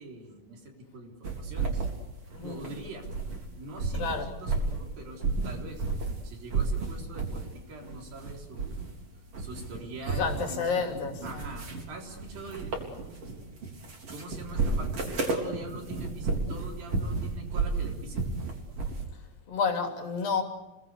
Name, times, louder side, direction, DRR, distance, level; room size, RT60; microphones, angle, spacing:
voice 1, 0.0-1.9 2.4-3.1 3.5-5.8 6.2-8.9 9.4-13.5 14.1-18.3, right 2 dB, 70° right, 5.7 m, -44 dB
sound 1, 1.2-3.5 3.7-6.2 6.5-7.5 7.8-9.0 9.3-19.0, right 4 dB, 40° right, 4.6 m, -32 dB
voice 2, 2.3-2.6 4.0-4.3 10.1-11.5 19.5-20.4, left 5 dB, 65° left, 4.7 m, -30 dB
29.0 x 19.5 x 8.4 m
omnidirectional pair, 4.3 m